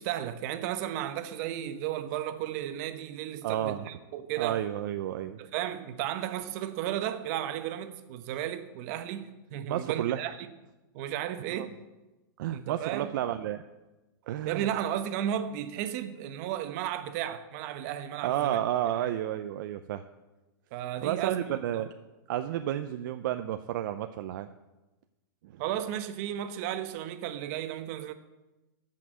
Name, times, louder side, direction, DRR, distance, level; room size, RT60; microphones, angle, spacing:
voice 1, 0.0-4.6 5.4-10.4 10.9-11.7 12.5-13.1 14.4-18.6 20.7-21.8 25.6-28.1, right 11 dB, 45° right, 1.0 m, -34 dB
voice 2, 3.4-3.9 4.4-5.4 9.7-10.2 11.5-11.7 12.4-13.6 14.3-14.7 18.2-20.0 21.0-21.9 22.3-24.5 25.4-25.6, right 12 dB, 60° right, 0.6 m, -31 dB
14.0 x 5.8 x 7.8 m
supercardioid pair, 150°, 12 cm